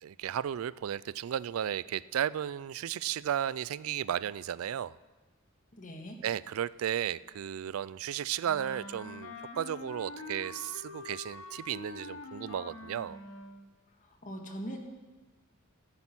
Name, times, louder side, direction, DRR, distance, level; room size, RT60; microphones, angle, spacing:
voice 1, 0.0-5.0 6.2-13.2, right 9 dB, 80° right, 19 dB, 0.3 m, -34 dB
voice 2, 5.7-6.2 14.0-14.8, equal, 40° left, 3 dB, 1.7 m, -41 dB
Wind instrument woodwind instrument, 8.4-13.7, left 3 dB, 70° left, 1.2 m, -45 dB
14.0 x 9.9 x 6.0 m, 1.2 s
head